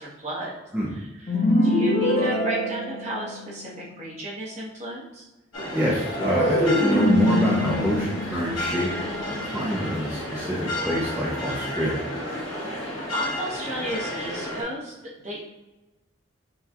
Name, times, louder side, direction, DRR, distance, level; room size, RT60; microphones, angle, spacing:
voice 1, 0.0-0.6 0.9-5.2 13.1-15.5, right 1 dB, 35° right, -5 dB, 1.1 m, -34 dB
sound 1, 1.3-3.7 6.1-9.4, left 1 dB, 55° left, 0.9 m, -24 dB
sound 2, 5.5-14.6, left 1 dB, 80° left, 1.5 m, -32 dB
voice 2, 5.7-8.9 9.5-12.0, equal, 5° right, -8 dB, 0.6 m, -26 dB
5.7 x 2.3 x 2.8 m, 1.0 s
head